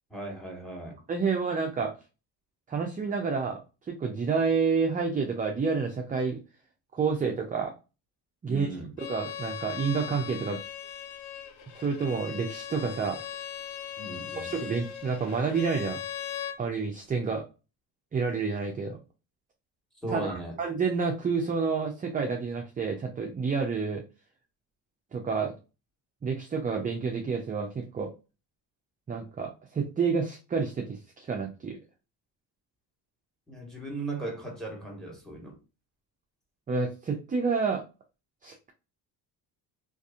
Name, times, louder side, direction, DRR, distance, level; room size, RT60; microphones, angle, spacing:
voice 1, 0.1-1.0 8.4-8.9 14.0-14.5 20.0-20.5 33.5-35.5, right 2 dB, ahead, 1.3 m, -37 dB
voice 2, 1.1-1.9 2.7-3.6 3.9-6.4 6.9-7.7 8.4-8.7 9.0-10.6 11.7-13.2 14.3-16.0 16.6-17.4 18.1-19.0 20.1-24.0 25.1-25.5 26.2-28.1 29.1-31.8 36.7-37.8 38.4-38.7, right 5 dB, 20° right, 0.4 m, -29 dB
Bowed string instrument, 9.0-16.6, left 9 dB, 85° left, 0.6 m, -39 dB
2.6 x 2.5 x 2.3 m
supercardioid pair, 75°, 45 cm